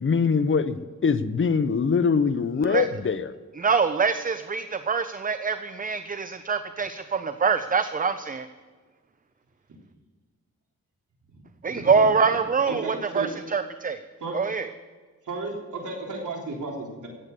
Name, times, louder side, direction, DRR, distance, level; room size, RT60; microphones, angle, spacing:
voice 1, 0.0-3.3, left 5 dB, 40° left, 12 dB, 0.9 m, -23 dB
voice 2, 3.6-8.5 11.6-14.0 14.3-14.7, right 5 dB, 25° right, 11 dB, 0.6 m, -24 dB
voice 3, 11.3-11.9 12.7-13.3 14.2-14.4 15.2-17.1, right 3 dB, 70° right, -1 dB, 3.7 m, -34 dB
15.5 x 8.3 x 6.8 m, 1.4 s
cardioid pair, 70°, 32 cm